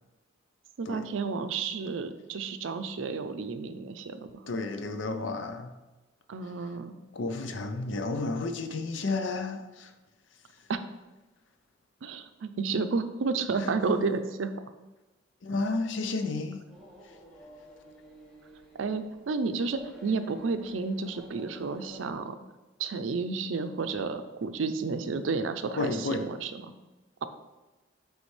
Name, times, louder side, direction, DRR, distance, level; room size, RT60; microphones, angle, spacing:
voice 1, 0.8-4.4 6.3-7.0 10.7-10.8 12.0-14.5 18.8-22.4 22.8-26.6, right 4 dB, 90° right, 10 dB, 0.5 m, -31 dB
voice 2, 4.5-5.7 7.1-9.9 13.6-13.7 15.4-16.6 17.0-17.2 25.8-26.3, left 3 dB, 80° left, 7 dB, 0.5 m, -32 dB
sound 1, 16.7-22.1, equal, 5° left, 1.5 m, -51 dB
9.5 x 3.3 x 3.2 m, 1.1 s
head